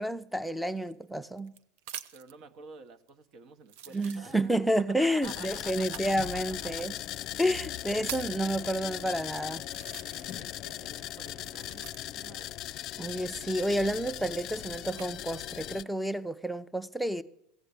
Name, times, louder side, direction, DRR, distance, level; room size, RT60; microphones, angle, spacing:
voice 1, 0.0-1.5 3.9-6.9 7.4-9.6 13.0-17.2, equal, ahead, 0.6 m, -30 dB
sound 1, 0.8-2.4 3.1-3.2 3.7-4.7 5.8-6.1 7.0-7.1 7.6-8.4 9.1-9.2 9.6-10.5 10.8-12.3 13.5-15.1 15.8-16.2, right 10 dB, 70° right, 0.7 m, -45 dB
voice 2, 2.1-6.8 8.3-9.3 10.1-12.6, right 4 dB, 50° right, 1.1 m, -51 dB
sound 2, 5.2-15.8, left 13 dB, 50° left, 0.4 m, -39 dB
15.5 x 7.7 x 8.4 m
supercardioid pair, 110°, 0 cm